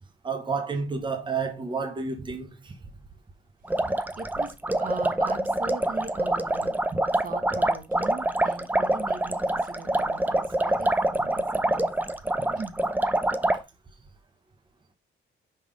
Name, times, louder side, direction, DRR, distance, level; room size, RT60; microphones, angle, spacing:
voice 1, 0.2-2.7 12.4-12.6, right 5 dB, 25° right, 0.9 m, -30 dB
sound 1, 3.7-13.6, right 1 dB, 10° right, 0.5 m, -25 dB
voice 2, 4.2-6.7 7.2-11.9 12.5-12.8, right 4 dB, 45° right, 1.1 m, -40 dB
5.6 x 3.4 x 4.9 m
cardioid pair, 90°, 20 cm